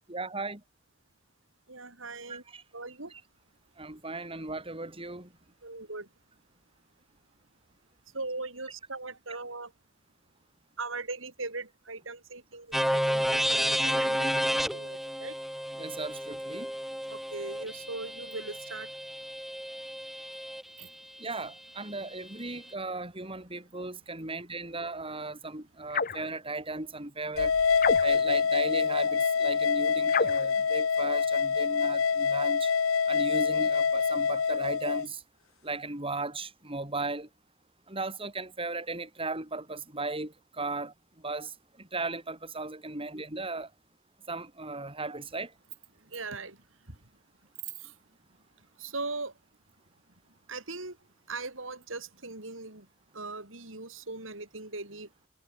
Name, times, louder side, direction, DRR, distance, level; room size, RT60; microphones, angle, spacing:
voice 1, 0.1-0.6 2.3-2.6 3.1-3.2 3.8-5.3 15.8-16.7 21.2-27.5 28.0-32.7 33.1-35.2 35.6-37.3 37.9-40.9 41.2-43.7 44.3-45.5, right 3 dB, 25° right, 6.6 m, -36 dB
voice 2, 1.7-2.4 2.7-3.1 5.6-6.1 8.1-9.7 10.8-15.3 17.1-18.9 20.8-20.9 46.1-46.6 47.6-47.9 48.8-49.3 50.5-51.0 51.3-52.9 53.1-55.1, right 3 dB, 70° right, 7.1 m, -39 dB
sound 1, 12.7-20.6, equal, ahead, 2.8 m, -31 dB
sound 2, 25.9-26.3 27.8-28.4 30.1-30.5, left 5 dB, 45° left, 2.3 m, -29 dB
sound 3, 27.4-35.0, left 5 dB, 90° left, 0.8 m, -26 dB
head